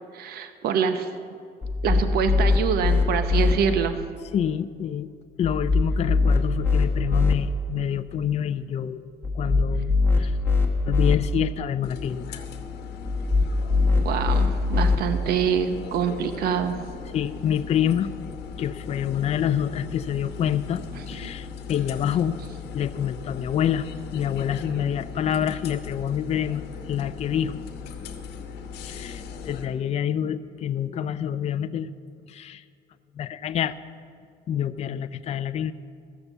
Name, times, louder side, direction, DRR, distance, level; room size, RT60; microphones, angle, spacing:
voice 1, 0.1-1.1 1.8-4.0 14.0-16.9 21.0-21.3, right 7 dB, 65° right, 9 dB, 0.7 m, -25 dB
sound 1, 1.6-3.5 5.4-7.3 9.2-11.1 13.0-15.0, left 3 dB, 15° left, 1.3 m, -22 dB
voice 2, 4.3-5.1 5.4-9.1 9.3-10.4 10.8-12.4 17.1-18.1 18.6-20.8 21.1-22.4 22.7-26.6 26.9-27.6 28.9-31.9 32.3-32.6 33.1-33.7 34.5-35.7, left 9 dB, 40° left, 12 dB, 0.4 m, -27 dB
sound 2, 11.8-29.7, left 6 dB, 75° left, 1.1 m, -38 dB
14.0 x 6.6 x 7.1 m, 2.3 s
cardioid pair, 110°, 17 cm